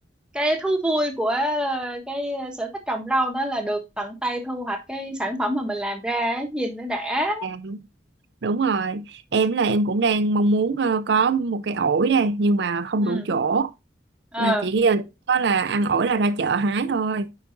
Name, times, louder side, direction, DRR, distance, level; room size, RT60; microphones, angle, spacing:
voice 1, 0.3-7.5 13.0-13.3 14.3-14.7, right 1 dB, 5° right, 1.1 m, -26 dB
voice 2, 7.4-7.8 8.4-13.7 14.4-17.3, right 4 dB, 70° right, 0.5 m, -22 dB
9.1 x 4.9 x 2.5 m
head